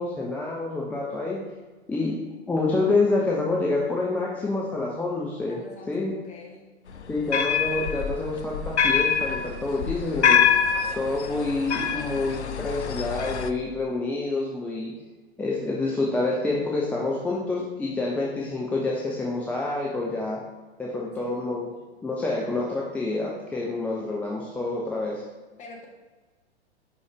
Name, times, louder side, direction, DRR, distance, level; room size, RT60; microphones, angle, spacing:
voice 1, 0.0-1.4 1.9-5.6 5.9-6.1 7.1-10.4 10.9-14.9 15.4-20.4 20.8-21.7 22.0-25.2, left 2 dB, 5° left, -3 dB, 0.4 m, -27 dB
voice 2, 5.5-6.6 20.8-21.4 25.6-25.9, left 3 dB, 20° left, -1 dB, 1.5 m, -45 dB
sound 1, 6.9-13.5, left 7 dB, 80° left, 0.6 m, -25 dB
5.6 x 5.4 x 3.5 m, 1.3 s
figure-of-eight pair, 105°, 34 cm